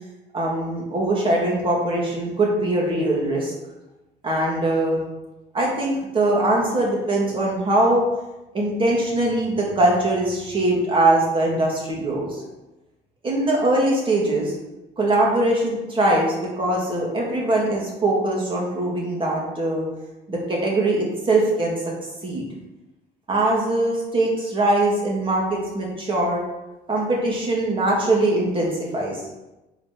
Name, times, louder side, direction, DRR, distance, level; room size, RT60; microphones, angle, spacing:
voice 1, 0.3-3.5 4.2-5.0 5.5-8.0 8.5-12.4 13.2-14.5 15.0-19.9 20.3-21.8 22.2-22.5 23.3-26.4 26.9-29.2, right 2 dB, 30° right, -2 dB, 2.2 m, -22 dB
5.3 x 4.0 x 6.0 m, 1.0 s
cardioid pair, 110°, 17 cm